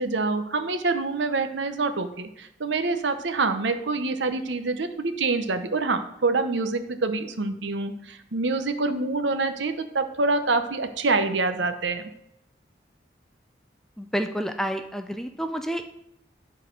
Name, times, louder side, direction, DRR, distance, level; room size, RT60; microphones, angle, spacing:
voice 1, 0.0-12.0, right 3 dB, 80° right, 9 dB, 0.8 m, -26 dB
voice 2, 14.0-15.9, equal, ahead, 7 dB, 0.4 m, -29 dB
10.0 x 4.1 x 5.1 m, 0.83 s
head